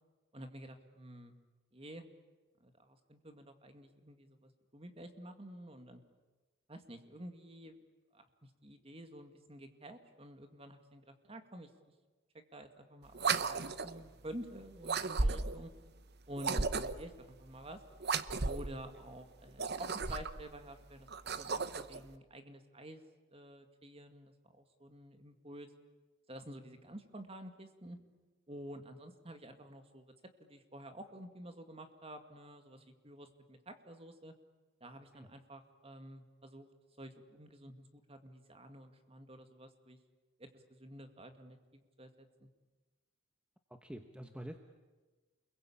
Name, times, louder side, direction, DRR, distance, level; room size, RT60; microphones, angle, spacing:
voice 1, 0.3-1.3 1.7-2.1 2.6-6.0 6.7-7.8 8.1-11.7 12.3-15.7 16.3-17.8 18.4-23.0 23.3-25.7 26.3-28.0 28.5-30.0 30.4-34.3 34.8-36.7 37.0-40.0 40.4-42.5, right 1 dB, 25° right, 7 dB, 2.2 m, -50 dB
sound 1, 13.1-14.0 14.8-15.6 16.4-17.1 18.0-18.7 19.5-20.4 21.1-22.0, right 4 dB, 50° right, 1.0 m, -34 dB
voice 2, 43.7-44.6, right 1 dB, 5° right, 5 dB, 1.1 m, -47 dB
29.5 x 22.5 x 8.7 m, 1.3 s
head